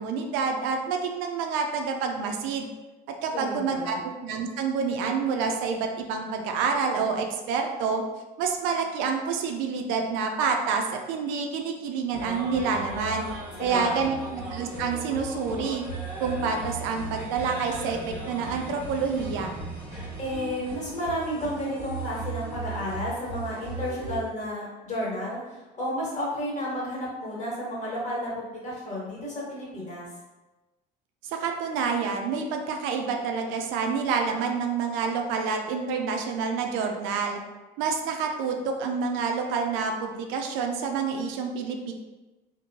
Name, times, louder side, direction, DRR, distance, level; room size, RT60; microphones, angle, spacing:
voice 1, 0.0-2.7 3.2-8.0 8.4-13.3 13.6-15.9 16.2-18.0 18.3-19.5 31.2-37.4 37.8-41.9, right 5 dB, 70° right, 3 dB, 0.4 m, -28 dB
voice 2, 3.3-4.0 13.6-14.2 20.2-30.1, equal, 35° left, -5 dB, 1.3 m, -32 dB
sound 1, 12.1-24.2, right 3 dB, 10° right, 1.2 m, -37 dB
sound 2, 15.1-20.3, left 1 dB, 5° left, 0.4 m, -45 dB
2.8 x 2.1 x 2.7 m, 1.1 s
hypercardioid pair, 70°, 21 cm